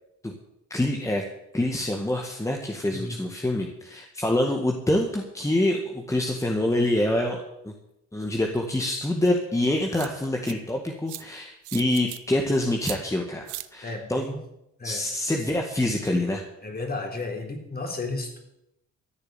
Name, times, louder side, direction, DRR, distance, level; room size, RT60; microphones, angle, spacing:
voice 1, 0.7-1.2 1.5-7.7 8.1-14.2 14.8-16.4, left 1 dB, 10° left, 1 dB, 1.7 m, -26 dB
sound 1, 9.2-9.3 9.9-10.5 11.1-11.2 11.6-12.2 12.8-13.0 13.5-13.7, right 16 dB, 85° right, 0.7 m, -37 dB
voice 2, 13.8-14.4 14.8-15.0 16.6-18.4, left 3 dB, 30° left, 3 dB, 3.4 m, -33 dB
14.0 x 6.7 x 9.0 m, 0.83 s
cardioid pair, 90°, 30 cm